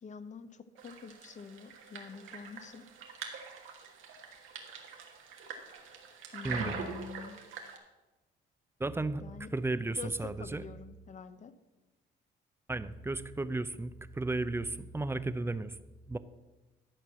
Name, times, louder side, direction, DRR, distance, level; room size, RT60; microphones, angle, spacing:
voice 1, 0.0-2.9 6.3-7.4 9.2-9.5 9.9-11.5, left 5 dB, 35° left, 12 dB, 0.7 m, -46 dB
sound 1, 0.8-7.8, right 5 dB, 85° right, 1.5 m, -44 dB
voice 2, 8.8-9.2 9.5-10.6 12.7-15.7 16.1-16.2, right 2 dB, 10° right, 13 dB, 0.5 m, -34 dB
11.5 x 4.5 x 7.4 m, 1.1 s
cardioid pair, 90°, 20 cm